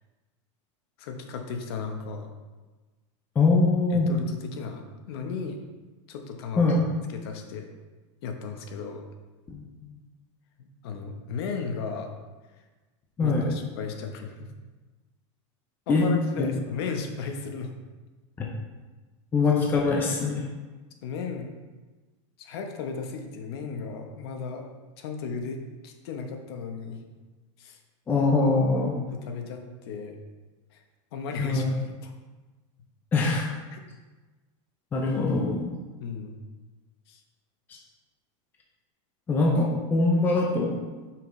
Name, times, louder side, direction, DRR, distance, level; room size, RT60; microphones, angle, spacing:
voice 1, 1.0-2.3 3.9-5.6 6.1-6.8 7.1-7.7 8.2-9.1 10.6-12.1 13.2-14.5 15.9-17.7 21.0-21.5 22.4-24.7 25.0-27.0 27.6-27.8 29.1-30.2 30.7-30.8 31.1-32.1 33.7-33.8 36.0-36.4 37.1-37.2, left 5 dB, 50° left, 4 dB, 1.0 m, -35 dB
voice 2, 3.4-4.1 6.6-6.8 9.5-9.9 13.2-13.5 15.9-16.1 16.4-16.5 18.4-18.5 19.3-20.5 28.1-28.9 31.4-31.7 33.1-33.5 34.9-35.7 37.7-37.8 39.3-40.8, left 3 dB, 10° left, -1 dB, 0.6 m, -23 dB
8.8 x 5.8 x 3.2 m, 1.2 s
supercardioid pair, 175°, 16 cm